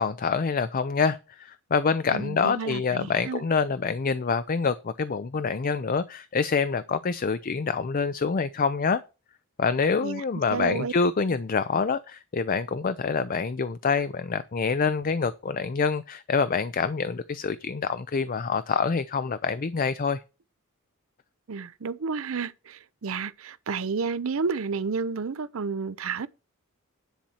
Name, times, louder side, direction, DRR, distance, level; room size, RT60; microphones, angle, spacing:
voice 1, 0.0-9.0 9.6-20.2, left 5 dB, 40° left, 0.4 m, -26 dB
voice 2, 2.1-3.4 10.0-10.2 10.5-10.9 21.5-26.3, right 5 dB, 65° right, 0.6 m, -31 dB
10.5 x 4.3 x 7.1 m
head